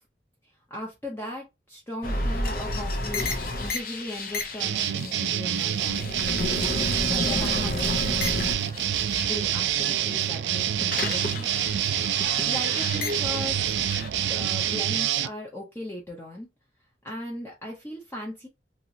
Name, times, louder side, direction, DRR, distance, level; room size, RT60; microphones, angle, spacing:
voice 1, 0.7-3.3 3.6-6.0 7.1-8.0 8.6-8.7 9.2-11.5 12.5-13.7 14.1-16.5 17.0-18.5, left 1 dB, 15° left, 0.7 m, -38 dB
sound 1, 2.0-10.0 10.3-14.1, left 2 dB, 55° left, 0.7 m, -31 dB
sound 2, 4.6-15.3, right 11 dB, 75° right, 0.3 m, -27 dB
sound 3, 8.5-14.8, right 1 dB, 50° right, 0.7 m, -41 dB
2.9 x 2.9 x 2.6 m
head